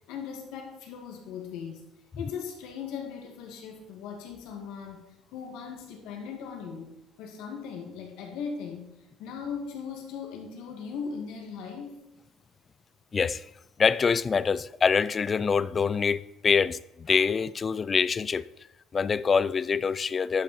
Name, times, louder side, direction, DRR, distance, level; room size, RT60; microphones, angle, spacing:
voice 1, 0.1-1.9 2.2-6.9 7.2-8.9 9.2-12.0, left 6 dB, 80° left, 2.2 m, -38 dB
voice 2, 13.1-13.4 13.8-18.4 18.9-20.4, left 5 dB, 30° left, 0.3 m, -25 dB
11.0 x 6.2 x 4.4 m
cardioid pair, 120°, 0 cm